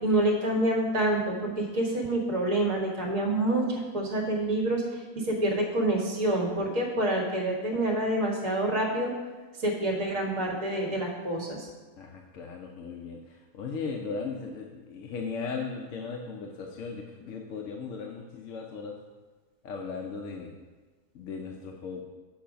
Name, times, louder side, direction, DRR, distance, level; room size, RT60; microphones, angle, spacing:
voice 1, 0.0-9.1 9.6-11.7, right 1 dB, 55° right, -1 dB, 1.9 m, -27 dB
voice 2, 12.0-18.9 19.6-20.5 21.1-22.0, left 5 dB, 65° left, 1 dB, 0.9 m, -37 dB
7.1 x 5.6 x 5.1 m, 1.4 s
omnidirectional pair, 1.7 m